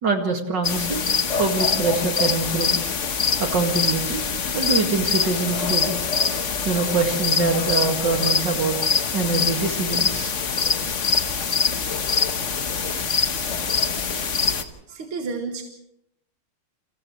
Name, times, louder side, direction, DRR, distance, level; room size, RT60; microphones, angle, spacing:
voice 1, 0.0-2.8 3.4-4.2 4.5-5.9 6.7-8.8 9.1-10.3 14.6-14.7, right 4 dB, 55° right, 3 dB, 2.8 m, -24 dB
sound 1, 0.6-14.6, left 5 dB, 40° left, 1.3 m, -24 dB
voice 2, 14.9-15.6, right 4 dB, 75° right, 3 dB, 2.5 m, -30 dB
29.5 x 28.0 x 3.2 m, 0.79 s
omnidirectional pair, 2.3 m